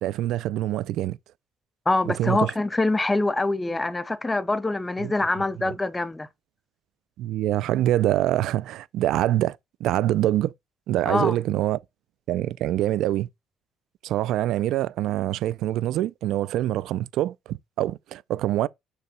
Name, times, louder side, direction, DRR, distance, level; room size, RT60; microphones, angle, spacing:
voice 1, 0.0-1.2 2.1-2.5 5.0-5.1 5.7-5.8 7.2-10.5 10.9-11.8 12.3-13.3 14.0-18.7, right 13 dB, 75° right, 0.4 m, -25 dB
voice 2, 1.9-6.3 11.1-11.4, left 2 dB, 15° left, 0.6 m, -24 dB
6.6 x 3.0 x 5.9 m
cardioid pair, 125°, 0 cm